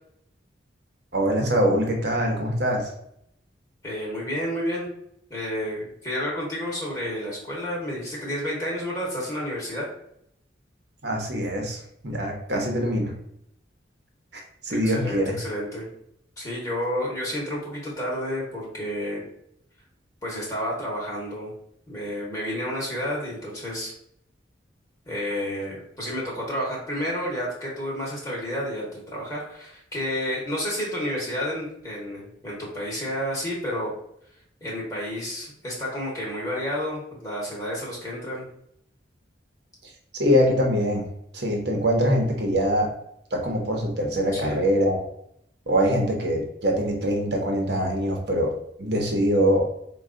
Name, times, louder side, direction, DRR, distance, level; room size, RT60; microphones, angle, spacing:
voice 1, 1.1-2.9 11.0-13.1 14.6-15.4 40.2-41.1 41.3-42.9 43.3-45.0 45.7-48.5 48.8-49.7, equal, 60° right, 1 dB, 1.0 m, -23 dB
voice 2, 3.8-4.9 5.3-9.9 14.7-15.9 16.4-19.3 20.2-21.5 21.9-23.9 25.1-33.9 34.6-38.5 44.3-44.6, equal, 20° left, -5 dB, 1.0 m, -30 dB
4.6 x 2.4 x 3.7 m, 0.73 s
head